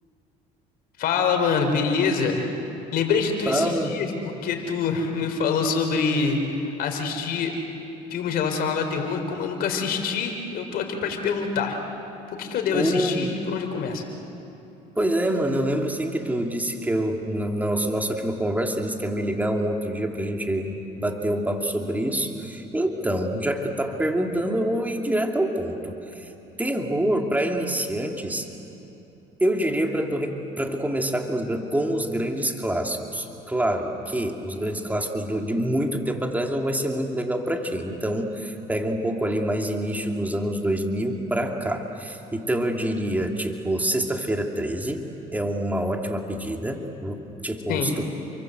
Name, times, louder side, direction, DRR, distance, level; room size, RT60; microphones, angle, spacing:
voice 1, 1.0-2.5 2.9-4.1 4.4-6.4 6.8-7.5 8.1-11.8 12.4-14.0 47.7-47.9, left 5 dB, 65° left, 4 dB, 4.2 m, -25 dB
voice 2, 3.5-4.0 12.7-13.3 14.9-26.3 26.6-28.5 29.4-45.0 45.3-48.0, right 1 dB, 10° right, 2 dB, 2.8 m, -26 dB
29.5 x 23.5 x 8.0 m, 2.9 s
supercardioid pair, 90°, 17 cm